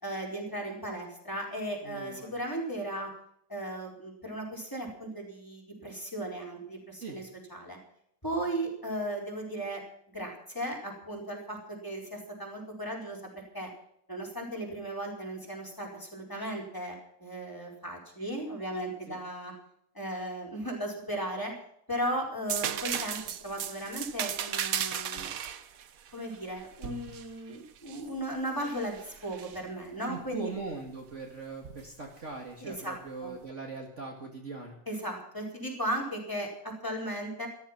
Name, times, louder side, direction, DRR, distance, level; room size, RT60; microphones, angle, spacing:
voice 1, 0.0-3.1 3.5-7.8 8.2-9.8 10.1-13.7 14.1-16.9 17.2-19.5 19.9-21.5 21.9-25.3 26.1-30.5 32.6-33.3 34.9-37.5, right 1 dB, 10° left, -1 dB, 4.6 m, -36 dB
voice 2, 1.8-2.3 7.0-7.2 19.1-19.2 30.1-34.8, right 3 dB, 40° right, 0 dB, 2.2 m, -41 dB
sound 1, 22.5-28.1 28.6-29.6 31.6-31.8, right 9 dB, 55° right, 1.2 m, -35 dB
14.0 x 14.0 x 5.9 m, 0.70 s
omnidirectional pair, 2.0 m